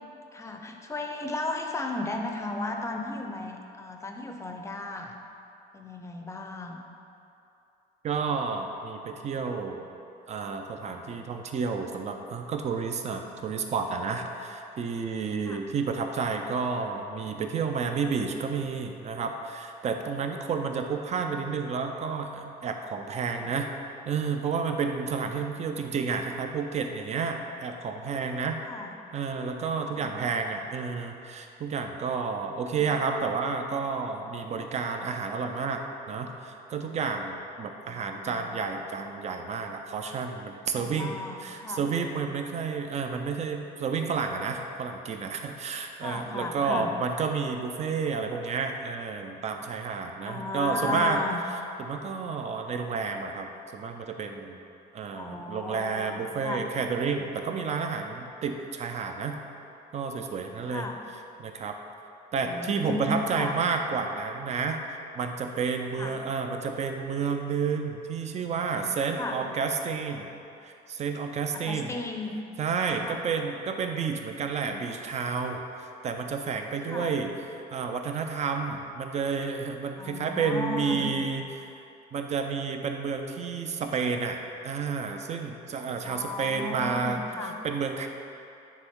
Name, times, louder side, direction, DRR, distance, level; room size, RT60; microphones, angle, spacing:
voice 1, 0.3-5.1 5.7-6.8 15.4-15.6 23.3-23.5 28.6-29.0 29.9-30.2 32.7-32.8 37.6-38.5 40.7-41.8 46.0-47.0 50.2-51.4 55.1-56.7 60.7-61.0 62.4-63.6 66.0-66.2 69.1-69.4 71.5-72.4 73.0-73.2 76.8-77.1 80.0-81.1 86.0-87.6, left 2 dB, 15° left, 3 dB, 0.6 m, -35 dB
voice 2, 8.0-9.9 10.3-23.7 24.1-28.6 29.1-51.2 51.8-54.6 54.9-59.4 59.9-60.9 61.4-61.8 62.3-64.8 65.2-70.3 70.6-71.9 72.6-75.7 76.0-77.3 77.7-81.7 82.1-84.4 84.6-87.2 87.6-88.1, right 5 dB, 40° right, 5 dB, 0.6 m, -30 dB
9.5 x 3.6 x 3.7 m, 2.7 s
cardioid pair, 110°, 17 cm